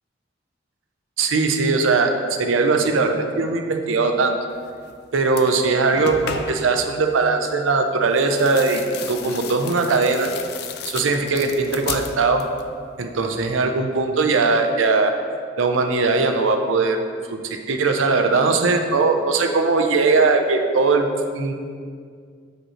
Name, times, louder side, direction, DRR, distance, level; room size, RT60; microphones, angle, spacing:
voice 1, 1.2-4.4 5.1-8.8 9.1-10.3 10.8-12.4 13.0-15.1 15.6-17.0 17.3-21.1 21.3-21.5, right 4 dB, 90° right, 5 dB, 0.5 m, -20 dB
sound 1, 4.8-5.0 5.3-6.8 8.1-12.7 13.0-13.6, left 6 dB, 55° left, 0.3 m, -34 dB
6.3 x 5.1 x 2.9 m, 2.1 s
head